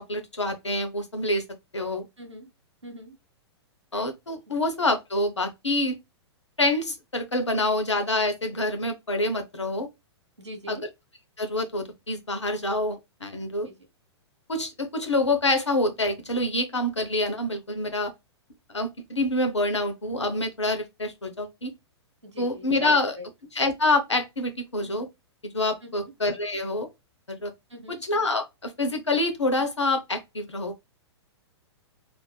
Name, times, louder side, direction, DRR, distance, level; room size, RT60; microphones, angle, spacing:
voice 1, 0.0-1.4 1.7-2.0 3.9-6.0 6.6-9.9 10.7-10.8 11.4-13.7 14.5-18.1 18.7-21.7 22.4-23.2 23.5-25.1 25.4-26.9 27.3-27.5 27.9-30.7, left 2 dB, 80° left, 0.7 m, -26 dB
voice 2, 2.2-2.5 2.8-3.2 10.4-10.8 13.6-13.7 22.2-23.3 25.8-26.1 27.7-28.0, equal, 90° right, 0.8 m, -41 dB
3.3 x 2.6 x 2.2 m
figure-of-eight pair, 105°, 15 cm